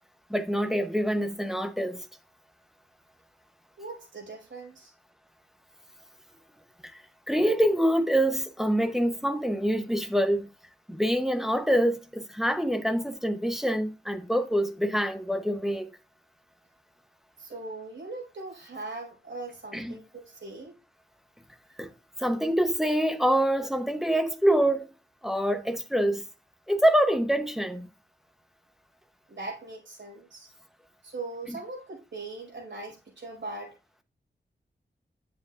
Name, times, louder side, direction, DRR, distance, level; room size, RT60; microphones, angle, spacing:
voice 1, 0.3-2.0 6.8-7.0 7.3-10.5 10.9-15.9 19.7-20.0 21.8-21.9 22.2-24.9 25.2-26.2 26.7-27.9 31.5-31.6, equal, ahead, 0.8 m, -25 dB
voice 2, 3.8-4.9 17.4-20.7 29.3-30.5 31.0-33.8, right 3 dB, 85° right, 4.7 m, -40 dB
10.0 x 7.6 x 2.4 m
wide cardioid pair, 110°, 19 cm